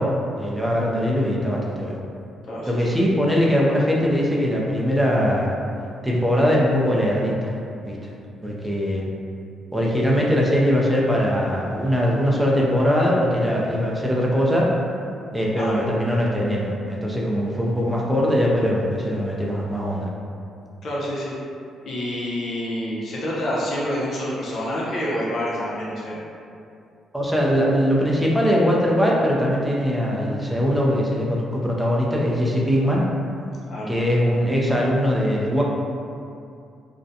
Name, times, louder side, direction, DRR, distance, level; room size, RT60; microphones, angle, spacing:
voice 1, 0.0-1.9 2.7-5.5 6.0-7.5 7.8-8.1 8.4-9.0 9.7-14.7 15.3-20.1 27.1-33.0 33.9-35.6, equal, 5° right, -4 dB, 0.5 m, -21 dB
voice 2, 2.5-2.8 15.6-15.9 20.8-21.4 21.8-26.2 33.7-34.0, equal, 60° left, -6 dB, 0.5 m, -27 dB
2.5 x 2.1 x 2.6 m, 2.5 s
cardioid pair, 90°, 0 cm